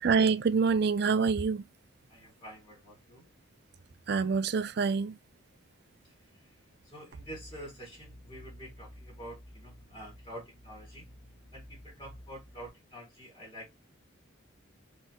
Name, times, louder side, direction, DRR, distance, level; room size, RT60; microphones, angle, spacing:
voice 1, 0.0-1.6 4.1-5.2, right 5 dB, 50° right, 0.4 m, -26 dB
voice 2, 2.1-3.3 6.0-11.1 11.5-13.7, equal, 25° left, 1.9 m, -48 dB
sound 1, 7.1-12.7, equal, 70° left, 1.2 m, -52 dB
4.1 x 3.8 x 2.8 m
head